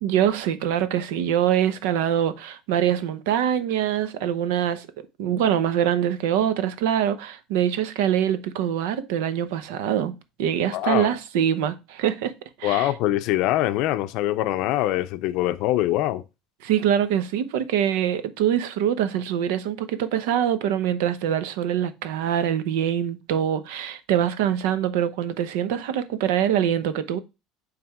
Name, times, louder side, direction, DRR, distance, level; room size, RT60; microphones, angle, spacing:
voice 1, 0.0-4.9 5.2-12.3 12.6-12.9 16.6-27.2, right 10 dB, 90° right, 0.9 m, -24 dB
voice 2, 10.7-11.1 12.6-16.2, left 15 dB, 60° left, 0.5 m, -23 dB
8.8 x 3.4 x 3.6 m
cardioid pair, 160°, 0 cm